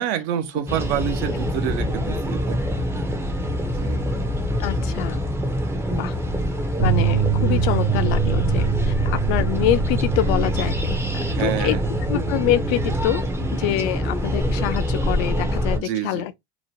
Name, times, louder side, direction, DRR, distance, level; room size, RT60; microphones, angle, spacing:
voice 1, 0.0-2.6 2.9-3.2 3.8-4.1 11.3-11.8 15.8-16.2, right 10 dB, 70° right, 0.7 m, -27 dB
sound 1, 0.7-15.8, equal, 5° right, 0.4 m, -25 dB
voice 2, 4.6-5.2 5.9-6.1 6.8-10.8 11.1-11.8 12.1-13.2 13.5-16.4, left 13 dB, 60° left, 0.4 m, -25 dB
sound 2, 6.8-13.1, right 9 dB, 45° right, 1.1 m, -25 dB
2.9 x 2.1 x 2.7 m
supercardioid pair, 110°, 35 cm